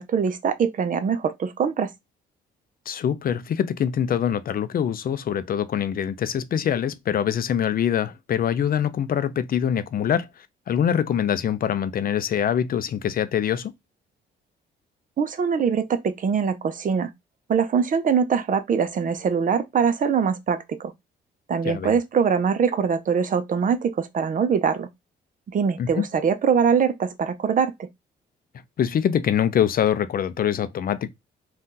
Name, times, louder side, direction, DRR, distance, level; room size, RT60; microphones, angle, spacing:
voice 1, 0.0-1.9 15.2-17.1 17.5-20.9 21.5-24.9 25.5-27.9, right 6 dB, 40° right, 0.6 m, -23 dB
voice 2, 2.9-10.3 10.7-13.7 21.6-22.0 25.8-26.1 28.8-31.1, left 9 dB, 45° left, 0.5 m, -24 dB
2.6 x 2.4 x 3.7 m
cardioid pair, 90°, 20 cm